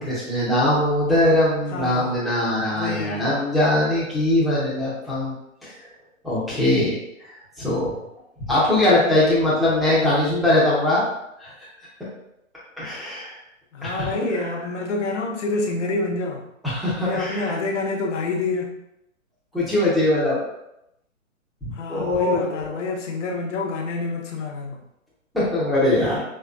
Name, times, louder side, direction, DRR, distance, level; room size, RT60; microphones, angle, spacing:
voice 1, 0.0-5.3 5.6-5.7 6.2-7.9 8.4-11.0 11.4-11.7 12.8-13.4 13.8-14.5 16.6-17.5 19.5-20.4 21.6-22.8 25.3-26.2, left 1 dB, ahead, -9 dB, 0.8 m, -21 dB
voice 2, 1.7-2.2 2.7-3.3 13.7-16.4 17.0-18.8 21.7-24.8, left 3 dB, 60° left, 1 dB, 1.0 m, -27 dB
5.5 x 3.2 x 2.4 m, 0.83 s
hypercardioid pair, 140°, 41 cm